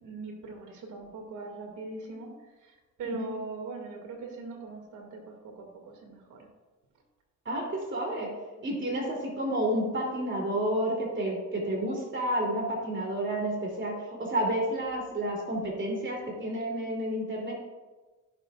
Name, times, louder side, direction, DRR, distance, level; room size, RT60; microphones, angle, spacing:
voice 1, 0.0-2.3 2.6-2.7 3.0-6.5 8.6-9.0, right 3 dB, 80° right, 1 dB, 2.4 m, -41 dB
voice 2, 7.4-8.3 8.6-17.5, right 1 dB, 40° right, -1 dB, 3.1 m, -30 dB
16.5 x 6.9 x 2.5 m, 1.3 s
cardioid pair, 90°, 30 cm